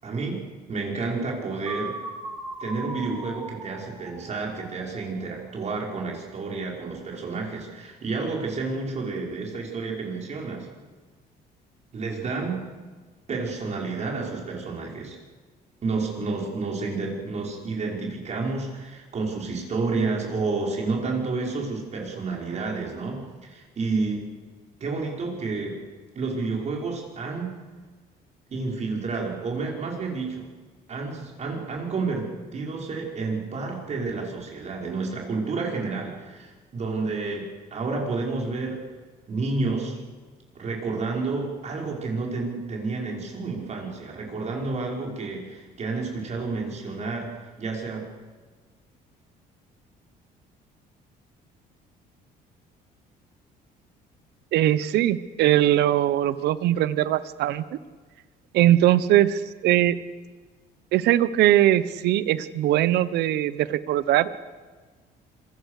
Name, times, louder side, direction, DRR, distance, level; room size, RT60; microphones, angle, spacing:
voice 1, 0.0-2.0 2.6-10.7 11.9-12.6 13.3-15.2 15.8-24.3 24.8-25.8 26.1-27.6 28.5-30.5 30.9-38.8 39.3-40.0 40.5-48.0, right 3 dB, 40° right, 0 dB, 5.6 m, -30 dB
sound 1, 1.7-5.5, right 2 dB, 15° right, 4.6 m, -39 dB
voice 2, 54.5-57.6 58.5-60.0 60.9-64.3, right 13 dB, 80° right, 15 dB, 1.1 m, -21 dB
26.0 x 22.5 x 6.7 m, 1.4 s
cardioid pair, 110°, 17 cm